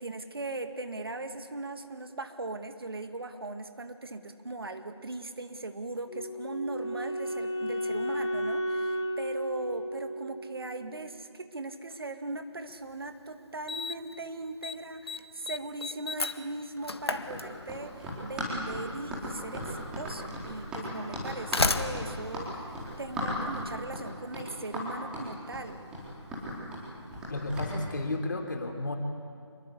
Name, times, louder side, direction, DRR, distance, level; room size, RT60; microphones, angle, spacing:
voice 1, 0.0-25.8, right 2 dB, 55° right, 8 dB, 2.1 m, -39 dB
Wind instrument woodwind instrument, 6.1-11.1, equal, 85° left, 3.3 m, -33 dB
Slam, 12.9-13.0 13.7-14.1 14.4-14.8 15.1-18.0 19.1-19.2 20.1-20.2 21.1-23.5, left 3 dB, 60° left, 1.5 m, -33 dB
Run, 17.3-27.7, equal, 5° right, 4.3 m, -37 dB
voice 2, 27.3-29.0, left 2 dB, 40° left, 4 dB, 3.3 m, -32 dB
27.5 x 23.5 x 8.4 m, 2.3 s
figure-of-eight pair, 160°, 15 cm